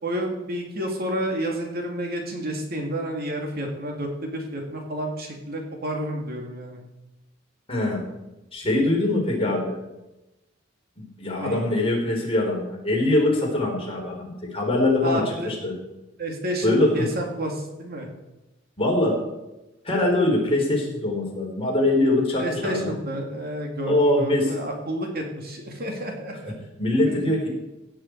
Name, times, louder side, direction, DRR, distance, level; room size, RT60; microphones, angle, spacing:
voice 1, 0.0-6.8 11.4-11.6 15.0-15.5 16.2-18.1 22.4-26.5 27.1-27.4, right 1 dB, 50° right, 2 dB, 2.3 m, -30 dB
voice 2, 7.7-8.0 8.5-9.8 11.0-15.7 16.6-17.1 18.8-19.2 19.8-22.9 23.8-24.5 26.4-26.5 26.8-27.5, left 1 dB, 30° left, -2 dB, 4.0 m, -23 dB
16.5 x 8.7 x 4.6 m, 0.98 s
head